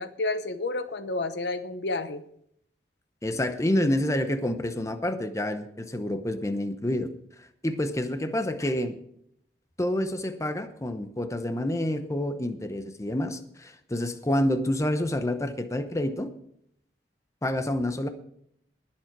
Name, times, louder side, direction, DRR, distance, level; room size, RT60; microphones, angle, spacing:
voice 1, 0.0-2.2, left 2 dB, 75° left, 11 dB, 0.9 m, -30 dB
voice 2, 3.2-7.1 7.4-9.0 9.8-16.3 17.4-18.1, left 1 dB, 20° left, 9 dB, 0.8 m, -28 dB
20.0 x 7.4 x 4.6 m, 0.70 s
head